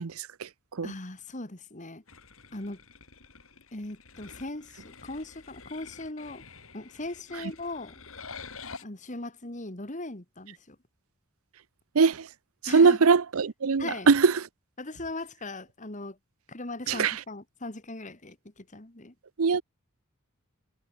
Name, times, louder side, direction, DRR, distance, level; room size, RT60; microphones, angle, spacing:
voice 1, 0.0-0.9 11.9-12.3 12.6-14.4 16.9-17.2 19.4-19.6, right 5 dB, 70° right, 0.6 m, -22 dB
voice 2, 0.8-2.0 2.5-2.8 3.7-6.4 6.7-7.9 8.8-10.8 12.7-13.0 13.8-14.1 14.8-16.2 16.5-19.1, left 2 dB, 35° left, 2.1 m, -39 dB
sound 1, 2.1-8.8, left 5 dB, 65° left, 6.0 m, -48 dB
head